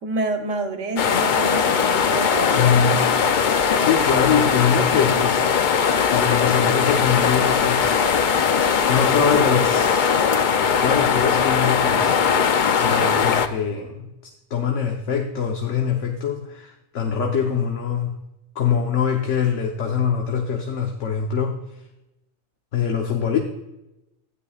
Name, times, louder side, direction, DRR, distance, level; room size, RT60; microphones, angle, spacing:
voice 1, 0.0-2.8, right 2 dB, 90° right, 5 dB, 1.3 m, -28 dB
sound 1, 1.0-13.5, left 6 dB, 55° left, 0.6 m, -19 dB
voice 2, 2.5-3.0 3.6-5.4 6.1-8.0 8.9-10.1 10.8-12.2 12.8-18.1 18.5-21.6 22.7-23.4, left 7 dB, 85° left, 2 dB, 1.3 m, -23 dB
12.5 x 10.5 x 2.4 m, 0.92 s
omnidirectional pair, 1.2 m